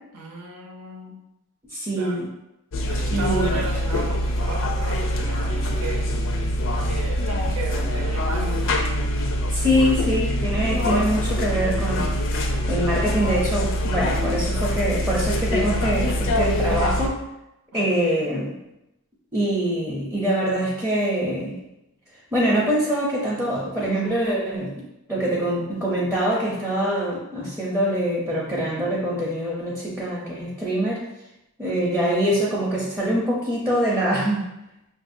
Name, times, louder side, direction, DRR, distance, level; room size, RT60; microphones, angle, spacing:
voice 1, 0.1-1.2 2.0-2.2 2.9-6.4 6.8-8.9 17.7-18.2 31.6-32.1, right 2 dB, 80° right, -1 dB, 0.8 m, -35 dB
voice 2, 1.7-2.3 3.1-3.6 9.5-12.1 12.7-17.2 17.7-18.6 19.3-21.6 22.3-24.8 25.1-31.0 31.6-34.5, equal, 10° right, -6 dB, 0.6 m, -24 dB
sound 1, 2.7-17.1, equal, 60° left, 0.5 m, -24 dB
5.3 x 2.6 x 2.6 m, 0.91 s
head